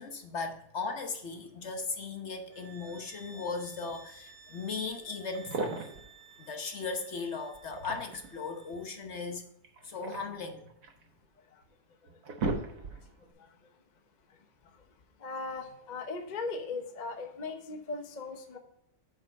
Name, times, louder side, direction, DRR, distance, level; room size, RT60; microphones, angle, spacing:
voice 1, 0.0-6.0 6.5-9.4 9.8-10.6, left 4 dB, 50° left, 1.1 m, -37 dB
sound 1, 2.5-8.9, right 4 dB, 30° right, 2.0 m, -55 dB
sound 2, 4.9-5.0 5.3-6.1 7.5-8.4 9.6-11.0 11.6-11.7 12.0-13.2, right 3 dB, 80° right, 1.8 m, -36 dB
voice 2, 12.5-13.7 14.3-14.8 15.2-18.6, left 3 dB, 35° left, 0.8 m, -40 dB
7.3 x 5.5 x 5.2 m
omnidirectional pair, 1.6 m